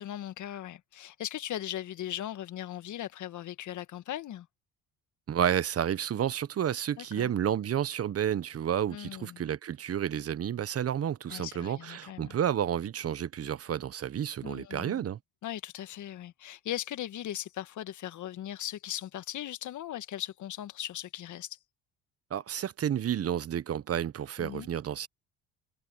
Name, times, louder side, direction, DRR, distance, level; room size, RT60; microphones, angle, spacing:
voice 1, 0.0-4.5 7.0-7.3 8.9-9.4 11.3-12.4 14.4-15.0 15.4-21.6 24.4-24.7, left 12 dB, 60° left, 1.8 m, -38 dB
voice 2, 5.3-15.2 22.3-25.1, right 9 dB, 45° right, 1.2 m, -31 dB
supercardioid pair, 70°, 34 cm